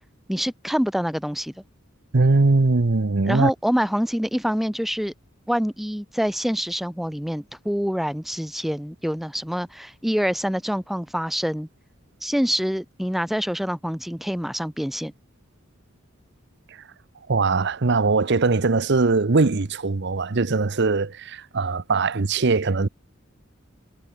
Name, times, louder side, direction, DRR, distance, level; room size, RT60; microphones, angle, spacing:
voice 1, 0.3-1.5 3.3-5.1 5.5-11.7 12.2-15.1, equal, ahead, 0.4 m, -26 dB
voice 2, 2.1-3.5 17.3-22.9, right 3 dB, 60° right, 0.8 m, -21 dB
head